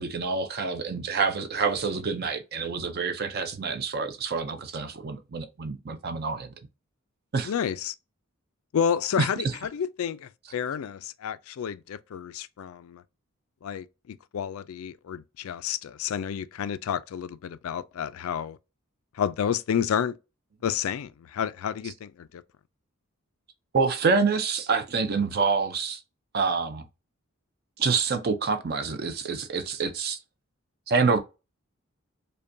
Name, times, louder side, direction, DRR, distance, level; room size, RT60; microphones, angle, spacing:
voice 1, 0.0-6.5 7.3-7.5 9.2-9.3 23.7-26.0 26.3-26.8 27.8-30.2 30.9-31.2, right 4 dB, 45° right, 0.5 m, -27 dB
voice 2, 7.4-7.9 8.7-13.0 13.6-18.6 19.2-20.2 20.6-22.4, left 8 dB, 80° left, 0.3 m, -30 dB
5.1 x 2.2 x 2.6 m
head